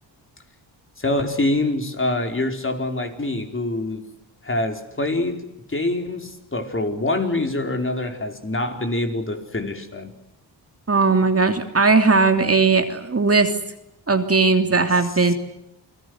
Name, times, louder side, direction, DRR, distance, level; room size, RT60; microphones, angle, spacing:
voice 1, 1.0-4.0 4.4-10.1 15.3-15.4, left 2 dB, 25° left, 4 dB, 4.8 m, -25 dB
voice 2, 10.9-13.5 14.1-15.3, right 4 dB, 30° right, 6 dB, 3.0 m, -18 dB
29.5 x 20.5 x 8.0 m, 0.82 s
cardioid pair, 75°, 45 cm